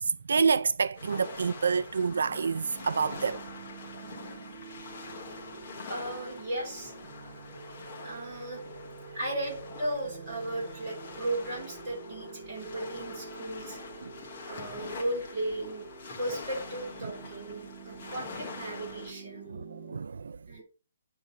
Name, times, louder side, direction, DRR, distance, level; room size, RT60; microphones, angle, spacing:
voice 1, 0.0-3.4 14.0-14.1 19.5-20.4, right 5 dB, 85° right, 0.3 m, -28 dB
sound 1, 0.9-19.1, left 5 dB, 30° left, 1.6 m, -45 dB
sound 2, 2.0-20.0, right 4 dB, 55° right, 1.5 m, -47 dB
voice 2, 5.9-6.9 8.0-8.6 9.1-13.8 14.4-19.6 20.5-20.6, right 1 dB, 20° right, 5.7 m, -36 dB
9.4 x 3.8 x 6.9 m
hypercardioid pair, 175°, 0 cm